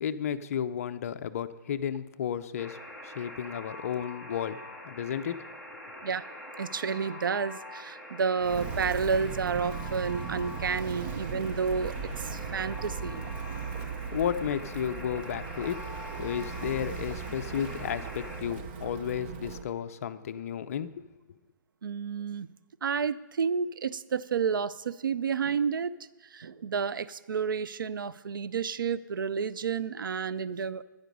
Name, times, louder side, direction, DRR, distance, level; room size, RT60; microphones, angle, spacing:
voice 1, 0.0-2.8 3.0-4.6 4.8-5.4 13.8-15.8 16.2-21.0, left 8 dB, 45° left, 11 dB, 0.6 m, -33 dB
Alarm, 2.6-18.4, left 1 dB, 5° right, 1.3 m, -44 dB
voice 2, 6.6-13.2 21.8-22.5 22.8-25.9 26.3-30.8, right 6 dB, 80° right, 16 dB, 0.5 m, -30 dB
Walk footsteps, 8.4-19.7, right 6 dB, 30° right, 0.8 m, -38 dB
13.0 x 10.0 x 5.3 m, 1.2 s
hypercardioid pair, 155°, 11 cm